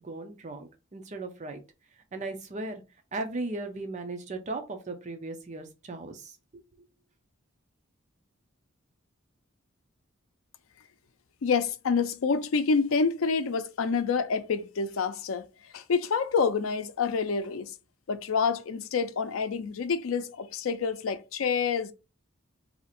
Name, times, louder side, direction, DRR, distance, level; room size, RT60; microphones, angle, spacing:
voice 1, 0.0-1.6 2.1-2.8 3.1-6.4, right 2 dB, 35° right, 0.5 m, -37 dB
voice 2, 11.4-15.5 15.7-17.7 18.1-21.9, left 5 dB, 80° left, 0.4 m, -27 dB
2.8 x 2.4 x 4.1 m
head